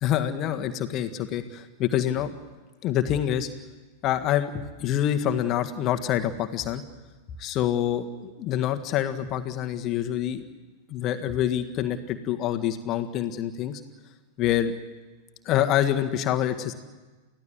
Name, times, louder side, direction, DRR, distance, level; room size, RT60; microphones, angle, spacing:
voice 1, 0.0-2.3 2.8-3.5 4.0-6.8 7.4-10.4 10.9-13.8 14.4-14.7 15.4-16.7, left 11 dB, 35° left, 7 dB, 1.7 m, -26 dB
30.0 x 16.5 x 7.7 m, 1.3 s
figure-of-eight pair, 90°, 0 cm